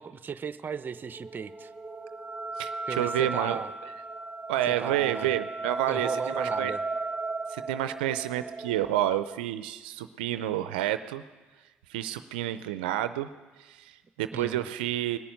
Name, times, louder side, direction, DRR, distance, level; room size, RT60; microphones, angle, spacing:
voice 1, 0.0-1.7 2.9-3.7 4.6-5.3 5.9-6.8 14.3-14.6, right 6 dB, 40° right, 14 dB, 0.7 m, -36 dB
sound 1, 0.8-9.4, right 3 dB, 20° right, 1.5 m, -36 dB
voice 2, 2.6-3.6 4.5-6.7 7.5-11.2 11.9-13.3 13.6-15.2, right 12 dB, 90° right, 12 dB, 0.5 m, -29 dB
19.5 x 7.0 x 9.3 m, 1.3 s
hypercardioid pair, 60°, 5 cm